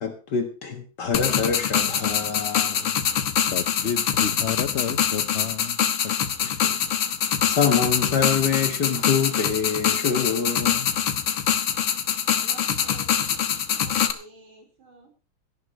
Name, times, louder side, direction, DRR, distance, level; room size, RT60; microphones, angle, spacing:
voice 1, 0.0-3.0 6.4-7.1 7.4-10.9, left 6 dB, 60° left, 6 dB, 2.1 m, -26 dB
sound 1, 1.1-14.1, left 8 dB, 80° left, 2.1 m, -24 dB
voice 2, 3.5-6.6, left 7 dB, 40° left, 12 dB, 1.1 m, -31 dB
voice 3, 12.3-15.1, right 3 dB, 75° right, 2 dB, 5.5 m, -49 dB
17.5 x 14.5 x 3.2 m, 0.34 s
omnidirectional pair, 2.2 m